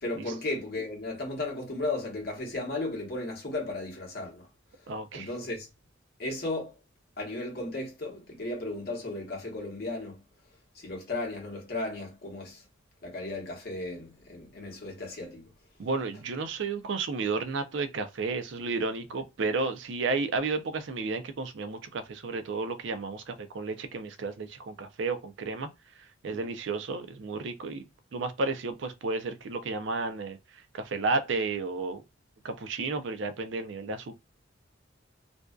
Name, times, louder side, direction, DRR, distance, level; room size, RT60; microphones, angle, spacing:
voice 1, 0.0-4.5 5.1-5.7 6.2-6.8 7.2-10.2 10.7-12.6 13.0-15.4 26.3-26.4, left 2 dB, 50° left, 0.9 m, -35 dB
voice 2, 4.9-5.3 15.8-25.7 26.2-27.8 28.1-30.4 30.7-32.0 32.4-34.2, right 3 dB, 65° right, 0.4 m, -32 dB
2.5 x 2.3 x 2.2 m
head